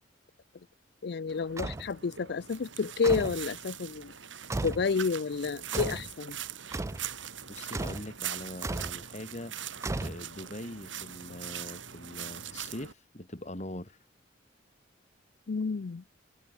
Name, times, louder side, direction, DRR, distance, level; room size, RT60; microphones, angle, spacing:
voice 1, 1.0-4.1 4.6-6.4 15.5-16.0, left 5 dB, 60° left, 0.5 m, -30 dB
sound 1, 1.3-12.9, right 9 dB, 90° right, 5.4 m, -42 dB
sound 2, 1.6-1.9 3.0-3.4 4.5-4.9 5.7-6.1 6.7-7.1 7.7-8.1 8.6-9.0 9.8-10.5, right 2 dB, 15° right, 0.3 m, -34 dB
voice 2, 7.5-9.5 10.0-14.0, left 1 dB, 40° left, 3.0 m, -42 dB
head